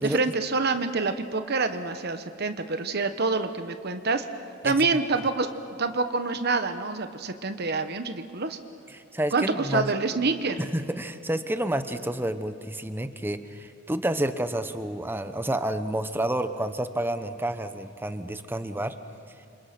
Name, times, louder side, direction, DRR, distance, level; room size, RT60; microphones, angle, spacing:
voice 1, 0.0-4.2 4.6-5.5 5.8-8.6 9.3-10.6, right 3 dB, 55° right, 8 dB, 1.1 m, -27 dB
voice 2, 8.9-9.9 10.6-18.9, right 1 dB, 10° right, 10 dB, 1.0 m, -29 dB
29.5 x 26.5 x 6.0 m, 2.5 s
head